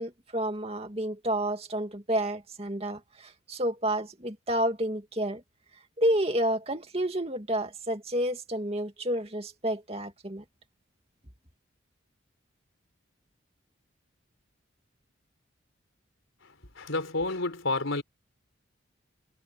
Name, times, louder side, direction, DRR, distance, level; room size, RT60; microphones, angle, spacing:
voice 1, 0.0-5.4 6.0-10.4, right 1 dB, 30° right, 2.4 m, -30 dB
voice 2, 16.8-18.0, left 2 dB, 85° left, 4.2 m, -29 dB
head